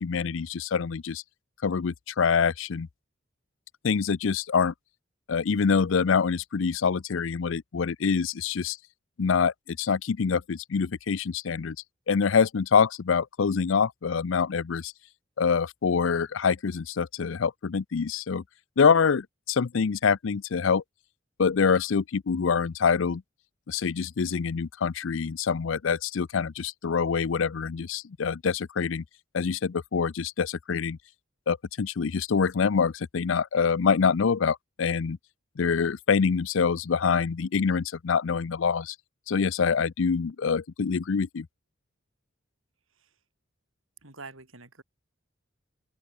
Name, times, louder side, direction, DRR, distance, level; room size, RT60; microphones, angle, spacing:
voice 1, 0.0-1.2 1.6-2.9 3.8-4.7 5.3-8.8 9.2-11.8 12.1-14.9 15.4-18.4 18.8-20.8 21.4-23.2 23.7-29.0 29.3-31.0 31.5-35.2 35.6-39.0 39.3-41.5, left 5 dB, 70° left, 0.5 m, -25 dB
voice 2, 44.0-44.8, right 3 dB, 85° right, 5.1 m, -46 dB
open air
head